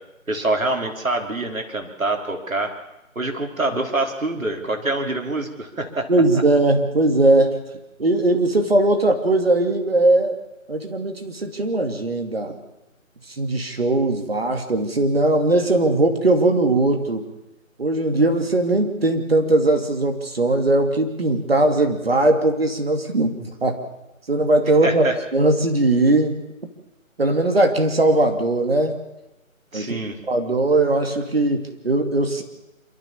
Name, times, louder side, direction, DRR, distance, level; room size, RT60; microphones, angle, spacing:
voice 1, 0.3-2.7 3.2-6.1 24.8-25.2 29.7-30.2, right 2 dB, 75° right, 4 dB, 3.9 m, -25 dB
voice 2, 6.1-7.6 8.0-10.4 10.7-12.5 13.4-17.3 17.8-23.8 24.3-25.1 25.3-26.4 27.2-29.0 29.7-30.0 30.3-32.4, right 2 dB, 45° right, 5 dB, 2.7 m, -19 dB
27.5 x 13.5 x 7.2 m, 0.94 s
figure-of-eight pair, 170°, 41 cm